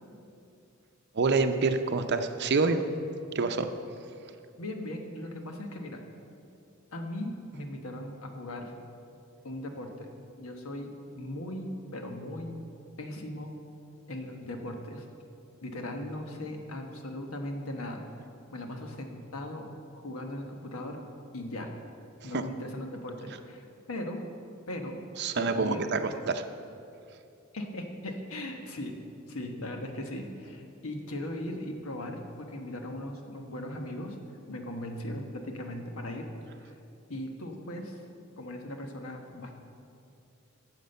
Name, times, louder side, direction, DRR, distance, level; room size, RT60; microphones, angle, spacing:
voice 1, 1.1-2.8 3.3-3.7 22.2-22.4 25.2-26.4, right 4 dB, 50° right, 8 dB, 0.6 m, -27 dB
voice 2, 4.6-6.0 6.9-8.7 9.4-10.1 10.4-12.5 13.0-13.5 14.1-15.0 15.6-18.0 18.5-19.7 19.9-21.0 21.3-21.7 22.2-24.2 24.7-25.0 25.3-25.9 26.1-26.2 27.5-28.9 29.3-34.2 34.5-36.3 36.7-36.8 37.1-38.0 38.4-39.6, left 1 dB, 85° left, 4 dB, 1.2 m, -38 dB
9.5 x 7.3 x 6.7 m, 2.6 s
head